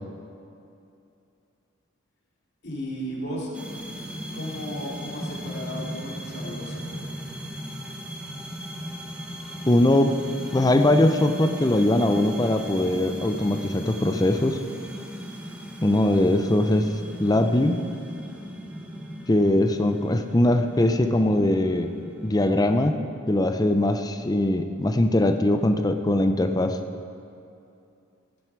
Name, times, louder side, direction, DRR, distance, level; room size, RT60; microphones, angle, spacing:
voice 1, 2.6-3.5 4.3-6.8, equal, 55° left, -4 dB, 2.5 m, -34 dB
sound 1, 3.5-22.8, equal, 5° right, 0.9 m, -37 dB
voice 2, 9.7-10.1 10.5-14.6 15.8-16.9 17.2-17.8 19.3-21.9 22.2-22.9 23.3-26.8, left 1 dB, 20° left, 7 dB, 0.5 m, -21 dB
15.5 x 9.7 x 4.6 m, 2.7 s
head